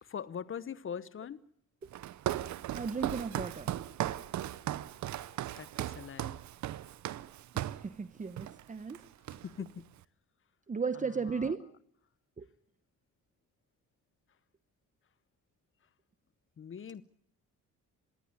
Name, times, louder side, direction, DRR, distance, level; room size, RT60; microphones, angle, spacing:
voice 1, 0.0-1.4 5.6-6.4 9.3-10.0 10.9-11.5 16.6-17.0, left 7 dB, 45° left, 1.1 m, -42 dB
Walk footsteps, 1.9-7.9 8.4-8.6 8.9-9.7, right 13 dB, 70° right, 0.8 m, -37 dB
voice 2, 2.7-3.7 7.5-9.0 10.7-11.6 12.4-12.5, right 5 dB, 25° right, 1.0 m, -35 dB
21.0 x 16.0 x 9.8 m
cardioid pair, 90°, 30 cm